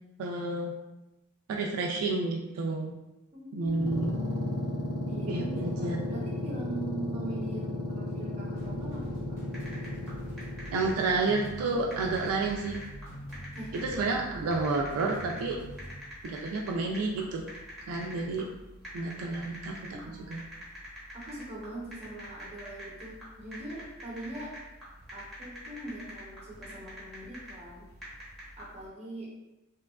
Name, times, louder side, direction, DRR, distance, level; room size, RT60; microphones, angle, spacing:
voice 1, 0.2-0.7 1.5-2.9 3.5-4.1 5.3-6.0 10.7-12.8 13.7-15.6 16.2-17.5 17.9-18.5 18.9-20.4, right 3 dB, 80° right, 1 dB, 0.3 m, -30 dB
voice 2, 3.3-4.1 5.1-9.4 13.5-13.7 19.9-20.4 21.1-24.5 25.1-27.9 28.6-29.3, right 1 dB, 30° right, -4 dB, 0.7 m, -42 dB
sound 1, 3.7-11.0, left 1 dB, 70° left, 0.4 m, -34 dB
sound 2, 8.6-15.9, equal, 35° left, 1.1 m, -44 dB
sound 3, 9.5-28.9, equal, ahead, 0.8 m, -46 dB
2.8 x 2.3 x 2.2 m, 0.98 s
head